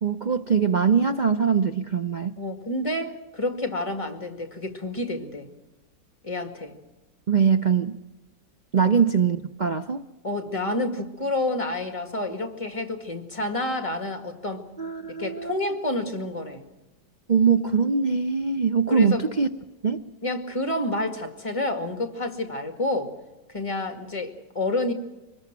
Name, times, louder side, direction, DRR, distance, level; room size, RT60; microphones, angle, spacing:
voice 1, 0.0-2.3 7.3-8.0 8.7-10.0 14.8-15.7 17.3-19.5 19.8-20.0, right 6 dB, 60° right, 8 dB, 0.4 m, -22 dB
voice 2, 2.4-5.5 6.2-6.7 8.8-8.9 10.2-14.6 15.1-16.6 18.9-19.2 20.2-23.1 23.5-24.9, left 2 dB, 20° left, 6 dB, 2.0 m, -29 dB
24.5 x 20.0 x 6.1 m, 1.0 s
omnidirectional pair, 1.9 m